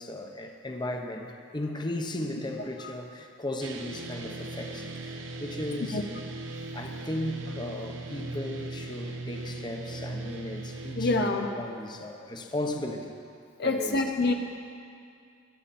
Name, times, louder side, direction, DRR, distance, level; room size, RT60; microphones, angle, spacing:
voice 1, 0.0-6.1 6.7-13.1 13.6-14.0, left 1 dB, 25° left, 3 dB, 1.0 m, -36 dB
sound 1, 3.6-11.2, right 2 dB, 70° right, 1.1 m, -38 dB
voice 2, 11.0-11.5 13.6-14.3, left 3 dB, 55° left, 4 dB, 0.9 m, -26 dB
22.5 x 10.5 x 4.3 m, 2.3 s
head